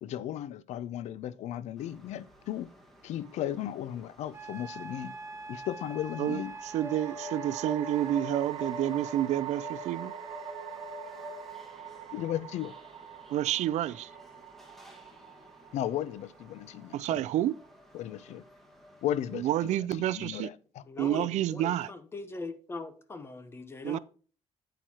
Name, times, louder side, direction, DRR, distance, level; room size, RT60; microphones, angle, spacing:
voice 1, 0.0-2.7 3.0-5.1 5.5-6.5 12.1-12.8 15.7-17.2 17.9-18.4 19.0-20.8, left 11 dB, 75° left, 0.5 m, -35 dB
sound 1, 1.8-19.8, left 3 dB, ahead, 1.6 m, -48 dB
sound 2, 3.2-3.9 6.4-17.7, right 10 dB, 55° right, 1.1 m, -44 dB
Wind instrument woodwind instrument, 4.3-8.2, right 3 dB, 20° right, 0.6 m, -44 dB
voice 2, 6.7-10.1 13.3-14.1 16.9-17.6 19.3-20.5 21.0-21.9 23.8-24.0, right 13 dB, 80° right, 0.4 m, -29 dB
voice 3, 20.9-24.0, left 3 dB, 20° left, 0.9 m, -41 dB
9.0 x 8.9 x 2.9 m
cardioid pair, 155°, 12 cm